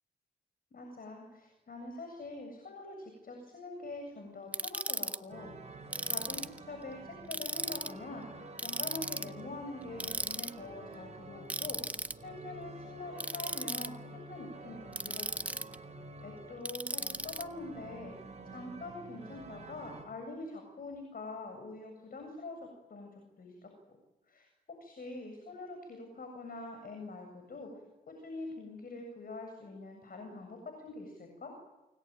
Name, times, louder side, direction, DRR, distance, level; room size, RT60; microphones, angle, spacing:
voice 1, 0.7-8.3 8.6-15.5 16.2-22.6 22.9-23.1 23.4-24.0 24.3-27.7 28.1-31.5, left 2 dB, 60° left, 4 dB, 7.8 m, -45 dB
Ratchet pawl, 4.5-5.2 5.9-6.6 7.3-7.9 8.6-9.3 10.0-10.5 11.5-12.1 13.2-13.9 14.9-15.8 16.7-17.4, right 1 dB, 10° right, 1.4 m, -36 dB
sound 1, 5.3-20.0, right 3 dB, 40° right, 6.8 m, -49 dB
29.5 x 21.5 x 9.2 m, 1.0 s
cardioid pair, 55°, 17 cm